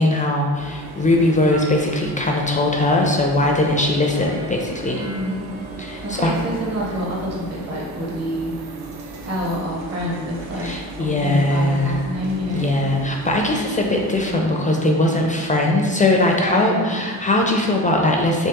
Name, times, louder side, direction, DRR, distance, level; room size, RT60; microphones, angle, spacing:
voice 1, 0.0-5.0 5.8-6.3 10.6-12.0 12.5-18.5, left 1 dB, 20° left, 1 dB, 0.3 m, -20 dB
sound 1, 0.5-14.3, right 3 dB, 55° right, 0.5 m, -37 dB
sound 2, 0.8-18.0, right 2 dB, 75° right, 0.9 m, -41 dB
voice 2, 5.0-5.5 6.0-8.5 9.2-12.7 16.4-17.1, equal, 35° right, -5 dB, 1.0 m, -27 dB
3.4 x 3.1 x 2.9 m, 1.5 s
supercardioid pair, 70°, 47 cm